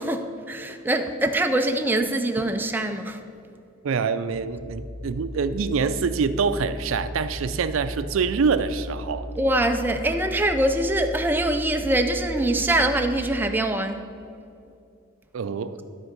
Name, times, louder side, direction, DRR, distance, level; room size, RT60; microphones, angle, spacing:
voice 1, 0.0-3.2 9.4-14.1, right 1 dB, 10° right, 0.4 m, -24 dB
voice 2, 3.8-9.3 15.3-15.8, right 5 dB, 80° right, 0.4 m, -25 dB
sound 1, 4.3-13.2, equal, 30° left, 1.0 m, -36 dB
12.0 x 4.5 x 6.6 m
head